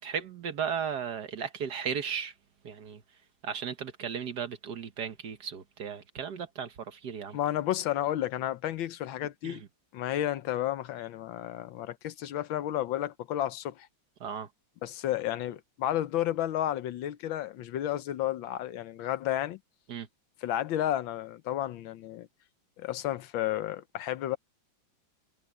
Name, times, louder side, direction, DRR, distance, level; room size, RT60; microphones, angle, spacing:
voice 1, 0.0-2.3 2.6-3.0 3.4-7.4 9.4-9.7 14.2-14.5 19.9-20.1, right 7 dB, 60° right, 1.6 m, -35 dB
voice 2, 7.3-9.6 9.9-13.9 14.8-19.6 20.4-22.3 22.8-24.4, left 12 dB, 75° left, 1.5 m, -32 dB
omnidirectional pair, 2.2 m